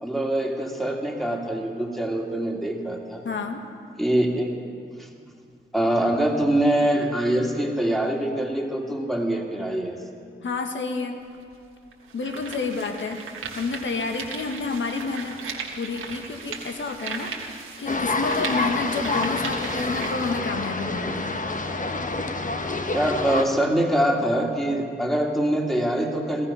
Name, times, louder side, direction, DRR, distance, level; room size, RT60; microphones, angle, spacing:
voice 1, 0.0-3.2 4.0-4.5 5.0-5.1 5.7-10.0 22.9-26.5, right 1 dB, ahead, 0 dB, 2.6 m, -24 dB
voice 2, 3.2-3.6 10.4-11.2 12.1-13.2 13.5-15.4 15.7-21.4, left 4 dB, 65° left, 5 dB, 1.5 m, -30 dB
sound 1, 11.2-11.3 11.9-20.4, right 5 dB, 90° right, 1.4 m, -37 dB
sound 2, 17.9-23.4, left 3 dB, 40° left, 1.2 m, -27 dB
15.5 x 14.5 x 5.6 m, 2.3 s
cardioid pair, 45°, 21 cm